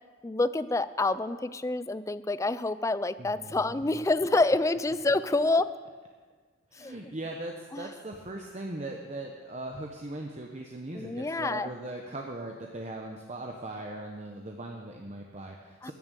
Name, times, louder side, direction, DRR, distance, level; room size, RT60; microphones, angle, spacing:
voice 1, 0.2-5.7 6.8-6.9 7.7-7.9 10.9-11.7 15.8-15.9, left 2 dB, 15° left, 15 dB, 0.3 m, -27 dB
voice 2, 3.2-4.0 6.7-15.9, right 2 dB, 35° right, 1 dB, 0.9 m, -39 dB
14.5 x 7.4 x 8.1 m, 1.5 s
head